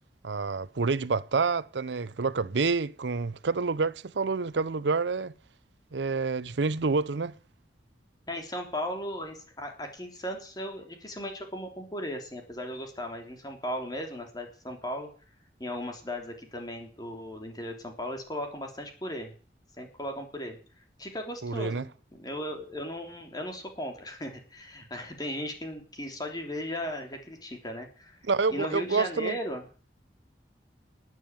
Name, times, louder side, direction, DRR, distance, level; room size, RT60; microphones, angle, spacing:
voice 1, 0.2-5.3 5.9-7.3 21.4-21.9 28.3-29.4, right 4 dB, 90° right, 0.7 m, -28 dB
voice 2, 8.3-15.1 15.6-19.3 19.8-20.6 21.0-28.2 28.5-29.6, equal, 20° left, 3.5 m, -37 dB
14.0 x 9.5 x 9.2 m
head